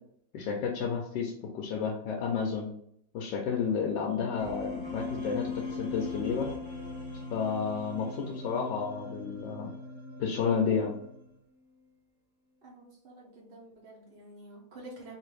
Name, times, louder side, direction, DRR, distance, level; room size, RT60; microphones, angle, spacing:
voice 1, 0.3-2.7 3.1-6.5 7.3-9.7 10.2-11.0, left 6 dB, 75° left, 1 dB, 1.1 m, -31 dB
sound 1, 4.4-11.4, left 3 dB, 25° left, 0.6 m, -40 dB
voice 2, 12.6-15.1, right 1 dB, 65° right, -2 dB, 0.5 m, -49 dB
3.8 x 2.5 x 3.3 m, 0.70 s
omnidirectional pair, 2.2 m